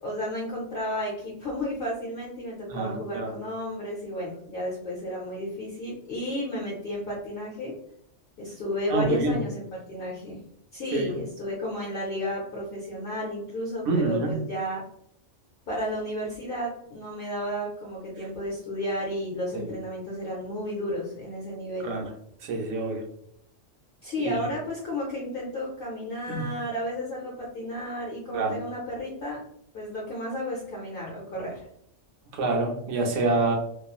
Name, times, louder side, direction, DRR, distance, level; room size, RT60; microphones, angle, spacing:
voice 1, 0.0-7.7 8.4-10.4 10.7-14.8 15.7-21.9 24.0-29.4 29.7-31.6, equal, 55° left, -4 dB, 0.8 m, -32 dB
voice 2, 2.7-3.3 8.9-9.4 10.9-11.2 13.9-14.3 19.5-19.7 21.8-22.1 22.4-23.0 24.2-24.4 26.3-26.4 28.3-28.5 32.3-33.6, right 2 dB, 85° right, 2 dB, 1.0 m, -27 dB
2.9 x 2.3 x 2.3 m, 0.70 s
omnidirectional pair, 1.2 m